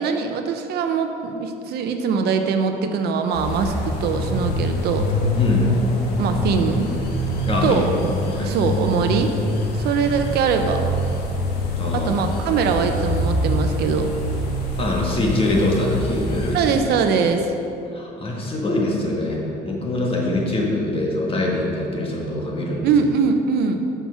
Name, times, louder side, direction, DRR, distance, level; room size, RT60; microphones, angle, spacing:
voice 1, 0.0-5.1 6.2-6.9 7.6-8.1 8.4-9.3 9.8-10.9 11.9-14.1 16.5-17.5 22.8-23.8, right 5 dB, 75° right, 6 dB, 0.7 m, -22 dB
sound 1, 3.3-16.8, left 1 dB, 75° left, 1.5 m, -24 dB
voice 2, 5.4-5.8 7.5-7.8 8.3-8.6 11.8-12.1 14.8-16.8 17.9-22.9, left 1 dB, 35° left, -2 dB, 1.7 m, -24 dB
7.2 x 5.9 x 5.8 m, 2.7 s
cardioid pair, 110°, 17 cm